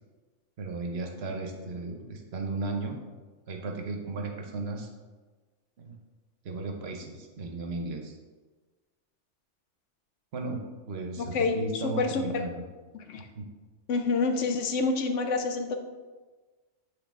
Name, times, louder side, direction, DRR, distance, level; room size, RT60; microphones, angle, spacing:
voice 1, 0.6-3.0 3.5-4.9 5.8-6.0 6.4-8.2 10.3-12.6 13.4-13.5, right 3 dB, 65° right, 3 dB, 1.0 m, -35 dB
voice 2, 11.2-12.4 12.9-13.3 13.9-15.8, left 4 dB, 85° left, 6 dB, 1.0 m, -28 dB
8.0 x 3.2 x 3.6 m, 1.3 s
omnidirectional pair, 1.2 m